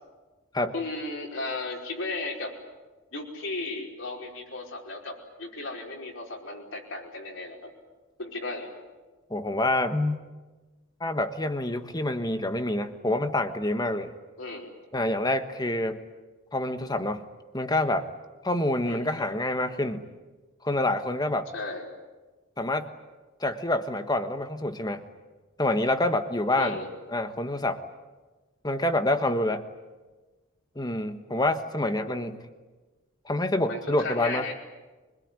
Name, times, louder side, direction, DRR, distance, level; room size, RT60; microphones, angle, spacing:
voice 1, 0.7-2.5 3.1-7.7 8.2-8.7 14.4-14.7 18.8-19.1 21.5-21.9 26.6-26.9 32.0-32.2 33.7-34.5, left 2 dB, 65° left, 0 dB, 5.2 m, -35 dB
voice 2, 9.3-10.2 11.0-14.1 14.9-16.0 16.5-17.2 17.5-18.1 18.4-20.1 20.6-21.5 22.6-22.9 23.4-25.0 25.6-26.8 27.1-27.8 28.6-29.6 30.7-32.4 33.2-34.5, left 1 dB, 20° left, 9 dB, 1.4 m, -27 dB
24.5 x 21.5 x 9.7 m, 1.2 s
head